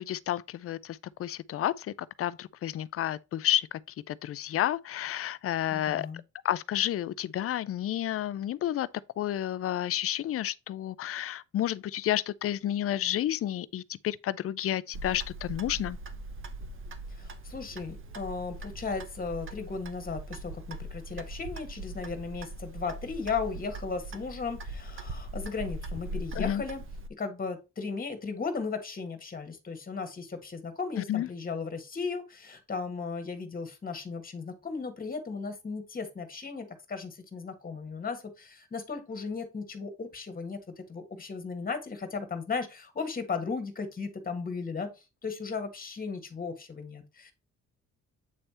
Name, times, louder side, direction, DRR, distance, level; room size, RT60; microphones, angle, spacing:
voice 1, 0.0-3.7 4.1-6.1 6.4-8.9 9.2-16.0 26.4-26.6 31.1-31.3, left 12 dB, 50° left, 0.5 m, -31 dB
voice 2, 5.7-6.2 17.1-26.8 27.2-47.3, left 4 dB, 30° left, 1.6 m, -36 dB
Clock, 14.9-27.1, right 1 dB, 45° right, 1.0 m, -40 dB
8.4 x 3.3 x 4.3 m
cardioid pair, 90°, 30 cm